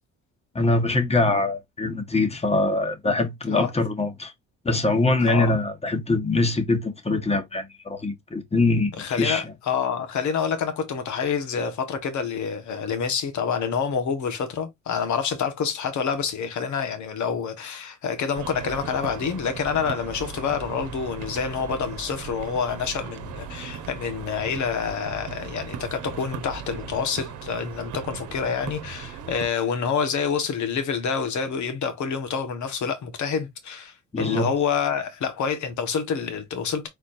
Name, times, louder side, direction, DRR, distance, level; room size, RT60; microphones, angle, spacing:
voice 1, 0.5-4.3 4.6-9.5 34.1-34.5, left 2 dB, 20° left, 1.4 m, -23 dB
voice 2, 5.3-5.6 9.0-36.9, left 6 dB, 70° left, 1.6 m, -27 dB
sound 1, 18.3-29.5, right 6 dB, 75° right, 1.0 m, -37 dB
4.4 x 4.3 x 2.6 m
cardioid pair, 90°, 30 cm